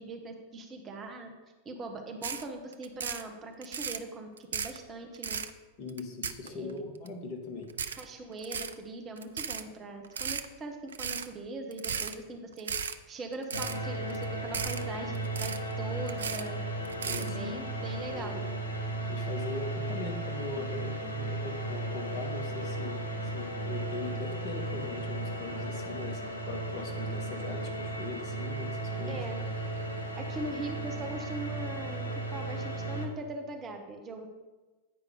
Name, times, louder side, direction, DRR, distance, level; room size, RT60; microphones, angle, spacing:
voice 1, 0.0-1.3 1.6-5.4 6.4-6.7 8.0-12.7 13.1-16.6 17.2-18.4 29.1-29.4 30.2-32.0 32.3-34.3, right 2 dB, 25° right, 3 dB, 1.2 m, -41 dB
sound 1, 2.2-2.4 2.7-3.2 3.6-4.0 4.4-4.8 5.1-5.5 5.9-6.7 7.1-7.2 7.7-8.0 8.4-8.7 9.2-9.6 10.0-10.5 10.9-11.3 11.7-12.1 12.5-12.9 13.3-13.8 14.1-14.2 14.5-14.8 15.1-15.7 16.1-16.5 16.8-17.3, right 7 dB, 70° right, 0.4 m, -35 dB
voice 2, 5.8-7.7 17.0-17.5 18.1-18.4 19.1-23.0 23.3-26.2 26.5-29.2, left 3 dB, 40° left, 2 dB, 1.3 m, -40 dB
sound 2, 13.5-33.1, right 2 dB, 75° left, 1.3 m, -35 dB
9.1 x 5.1 x 4.9 m, 1.2 s
figure-of-eight pair, 90°, 0 cm